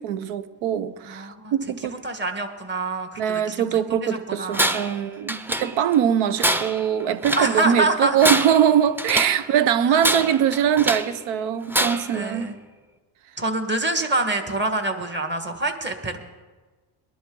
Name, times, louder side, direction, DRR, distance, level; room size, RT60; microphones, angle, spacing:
voice 1, 0.0-2.0 3.2-12.5, right 9 dB, 75° right, 1.1 m, -22 dB
voice 2, 1.1-1.5 1.9-4.8 7.3-8.2 9.9-10.0 12.1-12.6 13.4-16.2, right 2 dB, 20° right, 1.6 m, -26 dB
Tools, 4.5-5.0 5.3-6.0 6.4-7.5 8.1-9.4 10.0-11.2 11.7-12.2, right 1 dB, 5° right, 0.6 m, -25 dB
21.0 x 11.0 x 3.9 m
cardioid pair, 110°, 48 cm